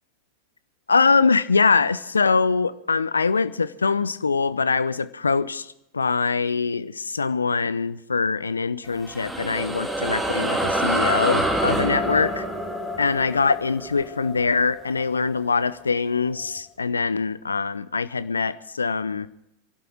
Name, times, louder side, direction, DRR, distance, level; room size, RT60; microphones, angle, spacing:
voice 1, 0.9-5.7 5.9-12.4 13.0-19.3, left 4 dB, 75° left, 15 dB, 0.7 m, -23 dB
sound 1, 8.8-15.7, right 1 dB, 5° right, 2.2 m, -27 dB
26.0 x 12.0 x 4.6 m, 0.87 s
figure-of-eight pair, 90°, 0 cm